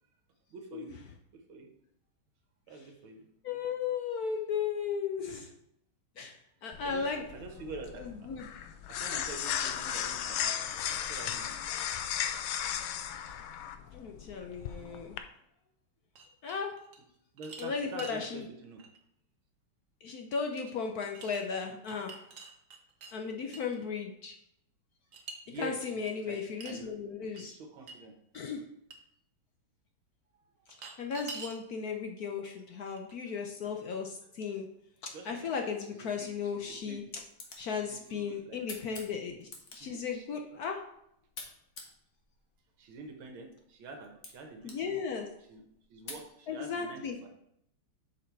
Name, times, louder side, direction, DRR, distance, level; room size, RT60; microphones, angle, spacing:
voice 1, 0.5-1.0 1.3-1.7 2.7-3.3 6.8-8.3 8.9-11.5 12.6-12.7 13.2-13.4 13.8-13.9 17.3-18.9 25.5-26.4 26.7-27.0 27.3-28.2 30.4-30.7 35.1-37.2 37.7-38.6 38.9-39.0 39.7-40.3 42.8-44.9 45.5-45.6 45.9-47.3, right 3 dB, 75° right, 4 dB, 2.0 m, -47 dB
voice 2, 3.4-5.5 6.2-7.2 8.0-8.5 13.9-15.2 16.4-16.7 17.6-18.4 20.0-22.2 23.1-24.3 25.6-27.5 28.3-28.6 31.0-34.7 35.0-37.0 37.6-40.8 44.6-45.3 46.5-47.2, left 6 dB, 65° left, 3 dB, 0.9 m, -36 dB
sound 1, 6.7-15.2, left 9 dB, 80° left, 1.4 m, -36 dB
sound 2, 16.1-17.0 17.4-18.2 18.8-19.0 20.6-20.7 21.0-21.4 21.8-23.1 23.5-23.8 25.1-25.4 25.8-25.9 26.6-26.8 27.3-27.4 27.9-28.0 28.3-28.4 28.9-29.0 30.7-31.6 32.4-32.5 32.9-33.4, right 4 dB, 50° right, 1.0 m, -46 dB
sound 3, 36.9-46.3, left 3 dB, 45° left, 1.5 m, -52 dB
6.9 x 5.1 x 4.5 m, 0.76 s
omnidirectional pair, 2.3 m